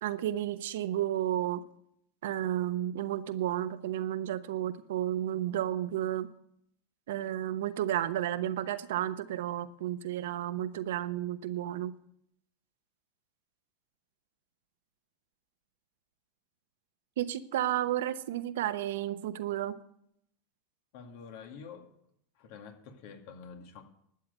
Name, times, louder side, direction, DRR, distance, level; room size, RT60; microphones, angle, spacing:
voice 1, 0.0-1.6 2.2-6.3 7.1-11.9 17.2-19.7, right 12 dB, 75° right, 11 dB, 0.9 m, -32 dB
voice 2, 20.9-21.9 22.4-23.8, left 6 dB, 65° left, 4 dB, 2.2 m, -47 dB
12.0 x 8.6 x 8.0 m, 0.72 s
hypercardioid pair, 95°, 0 cm